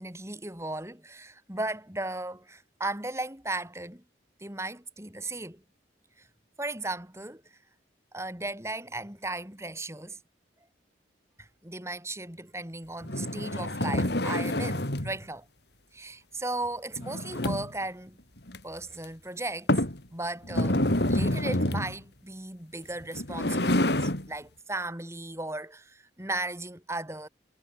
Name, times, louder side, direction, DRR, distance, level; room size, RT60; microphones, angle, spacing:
voice 1, 0.0-4.0 4.4-5.6 6.6-7.4 8.1-10.2 11.4-15.5 15.9-18.2 18.6-19.7 20.1-20.8 21.1-27.3, right 2 dB, 15° right, 4.1 m, -36 dB
sound 1, 13.0-15.2 17.0-17.8 18.5-18.6 19.0-19.1 19.7-20.0 20.5-21.9 23.0-24.3, left 1 dB, 60° left, 3.2 m, -27 dB
head